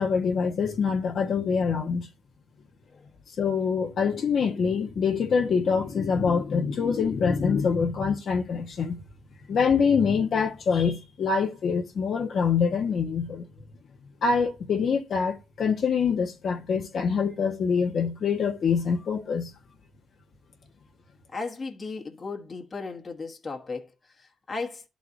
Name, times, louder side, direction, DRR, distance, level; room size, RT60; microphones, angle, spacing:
voice 1, 0.0-2.1 3.4-9.0 9.5-13.4 14.2-19.5, left 5 dB, 60° left, 1.3 m, -25 dB
voice 2, 21.3-24.8, left 4 dB, 30° left, 1.3 m, -36 dB
11.5 x 4.1 x 2.6 m
cardioid pair, 90°, 0 cm